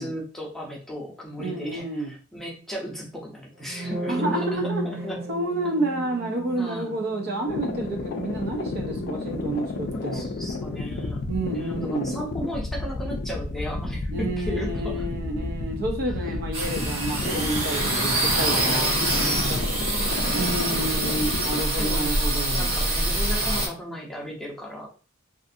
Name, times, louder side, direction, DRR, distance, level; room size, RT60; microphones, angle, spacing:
voice 1, 0.0-5.2 6.6-7.0 9.9-15.0 16.0-16.1 17.2-17.5 19.0-20.3 20.6-21.2 21.8-22.1 22.5-24.9, equal, ahead, 0.7 m, -36 dB
voice 2, 1.4-2.1 4.1-4.8 5.3-10.3 11.3-12.2 14.1-19.0 20.2-22.8, right 2 dB, 50° right, 0.5 m, -29 dB
sound 1, 3.6-11.4, right 1 dB, 30° right, 1.0 m, -36 dB
sound 2, 7.5-21.6, left 3 dB, 50° left, 0.4 m, -32 dB
sound 3, 16.5-23.7, right 1 dB, 85° right, 1.1 m, -25 dB
2.5 x 2.4 x 2.6 m
head